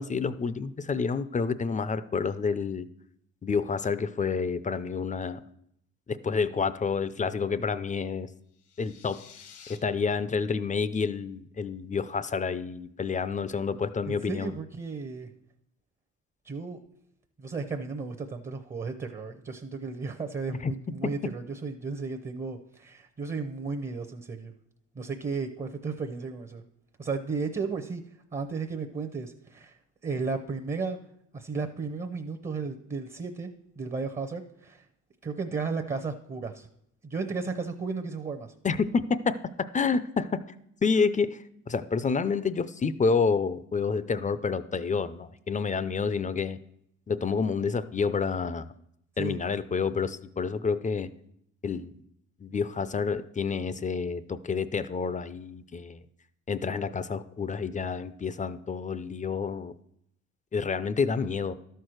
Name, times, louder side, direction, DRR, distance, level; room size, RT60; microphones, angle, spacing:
voice 1, 0.0-2.9 3.4-5.4 6.1-8.3 8.8-9.2 9.7-14.5 20.6-20.7 38.6-40.4 40.8-41.4 41.7-46.6 47.1-48.7 49.2-51.1 51.6-51.9 52.4-56.0 56.5-59.7 60.5-61.5, left 5 dB, 25° left, 14 dB, 0.5 m, -29 dB
sound 1, 8.5-9.8, left 7 dB, 80° left, 1.3 m, -51 dB
voice 2, 14.0-15.3 16.4-16.8 17.4-24.5 24.9-26.6 27.0-28.0 28.3-29.8 30.0-31.0 31.3-33.5 33.8-34.9 35.2-36.7 37.0-38.5 49.2-49.4, right 4 dB, 25° right, 6 dB, 0.8 m, -34 dB
12.0 x 4.6 x 6.4 m, 0.73 s
cardioid pair, 90°, 30 cm